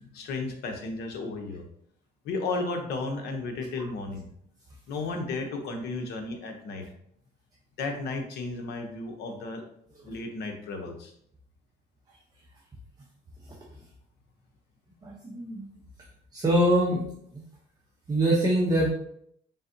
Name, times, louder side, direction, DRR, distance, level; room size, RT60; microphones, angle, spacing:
voice 1, 0.1-1.7 2.2-4.3 4.9-6.8 7.8-9.6 10.0-11.1, left 3 dB, 75° left, 4 dB, 0.8 m, -33 dB
voice 2, 15.0-15.7 16.3-17.0 18.1-18.9, right 1 dB, 20° right, -3 dB, 0.8 m, -23 dB
3.9 x 3.5 x 2.7 m, 0.69 s
cardioid pair, 110°, 17 cm